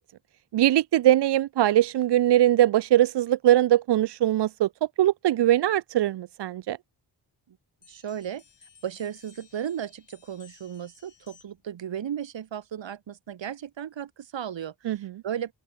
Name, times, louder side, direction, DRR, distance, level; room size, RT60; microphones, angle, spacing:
voice 1, 0.5-4.7 5.0-6.8 14.9-15.1, right 13 dB, 70° right, 0.5 m, -21 dB
sound 1, 7.8-11.7, left 7 dB, 70° left, 4.8 m, -57 dB
voice 2, 7.9-8.4 8.8-15.5, right 9 dB, 85° right, 2.0 m, -35 dB
open air
cardioid pair, 80°, 43 cm